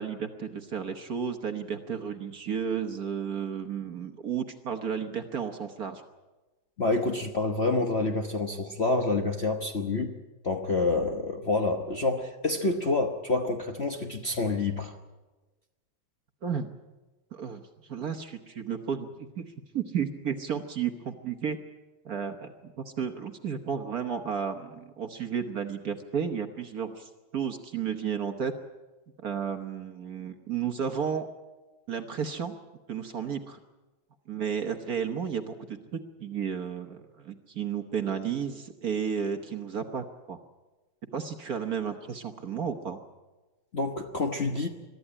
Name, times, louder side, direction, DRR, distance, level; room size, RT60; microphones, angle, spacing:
voice 1, 0.0-6.0 16.4-16.7 17.3-19.5 19.7-21.6 22.0-28.5 29.2-31.3 31.9-32.5 32.9-33.6 34.3-40.4 41.1-43.0, right 7 dB, 50° right, 6 dB, 1.4 m, -33 dB
voice 2, 6.8-10.2 10.4-14.9 43.7-44.7, left 3 dB, 40° left, 4 dB, 1.0 m, -28 dB
22.5 x 13.5 x 9.9 m, 1.2 s
omnidirectional pair, 2.4 m